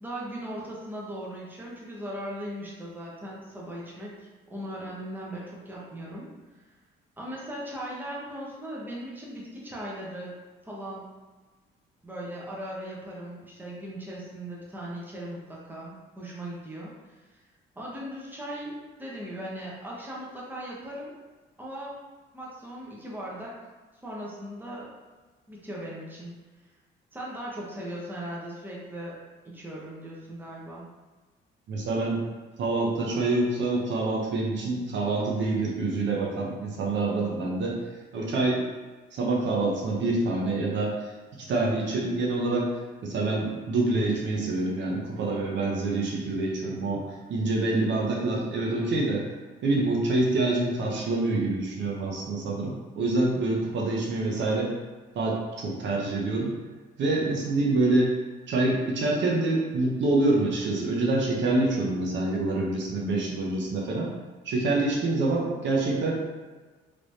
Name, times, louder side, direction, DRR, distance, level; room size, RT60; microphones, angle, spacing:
voice 1, 0.0-4.2 4.5-6.3 7.2-10.3 10.6-11.2 12.0-17.4 17.8-18.7 19.0-21.1 21.6-21.9 22.3-23.5 24.0-24.9 25.5-26.3 27.1-29.2 29.4-30.8, right 1 dB, 10° right, -5 dB, 1.0 m, -38 dB
voice 2, 31.7-32.2 32.6-37.8 38.1-38.6 39.1-41.0 41.3-47.0 47.3-49.3 49.6-54.7 55.1-56.5 57.0-58.1 58.5-64.1 64.4-66.1, right 2 dB, 70° right, -3 dB, 0.8 m, -26 dB
3.3 x 3.0 x 2.7 m, 1.3 s
cardioid pair, 90°, 20 cm